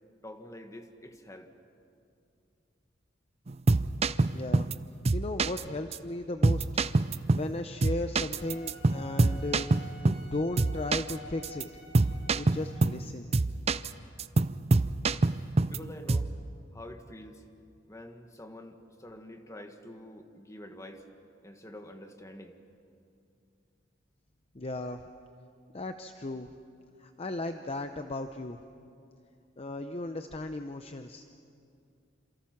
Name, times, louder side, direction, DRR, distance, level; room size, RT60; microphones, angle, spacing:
voice 1, 0.2-1.5 15.7-16.3 16.7-17.4 17.9-21.0 21.4-22.6, left 1 dB, 15° left, 6 dB, 1.6 m, -46 dB
sound 1, 3.5-4.8 5.1-5.6 5.9-6.0 6.4-7.5 7.8-10.3 10.6-11.1 11.4-11.6 11.9-13.0 13.3-13.9 14.2-15.8 16.1-16.4, right 3 dB, 35° right, 0.5 m, -25 dB
voice 2, 4.3-4.7 5.1-6.8 7.3-11.7 12.3-13.3 24.5-25.0 25.7-26.5 27.0-28.6 29.6-31.3, left 2 dB, 30° left, 7 dB, 0.7 m, -36 dB
Wind instrument woodwind instrument, 8.4-12.9, equal, 80° left, 5.4 m, -49 dB
28.0 x 28.0 x 6.0 m, 2.5 s
head